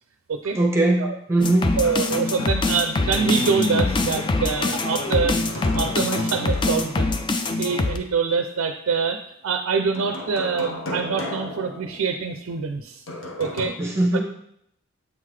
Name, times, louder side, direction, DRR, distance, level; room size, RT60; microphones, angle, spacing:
voice 1, 0.5-1.8 13.8-14.2, right 2 dB, 15° right, 0 dB, 1.0 m, -20 dB
sound 1, 1.4-8.0, left 3 dB, 25° left, 0.3 m, -24 dB
sound 2, 1.8-3.3 3.6-3.7 5.4-7.4 9.9-12.4 13.1-13.7, left 1 dB, 75° left, 0.9 m, -34 dB
voice 2, 1.8-13.0 13.4-13.8 14.1-14.2, right 5 dB, 80° right, 6 dB, 0.4 m, -25 dB
7.8 x 3.7 x 3.2 m, 0.74 s
head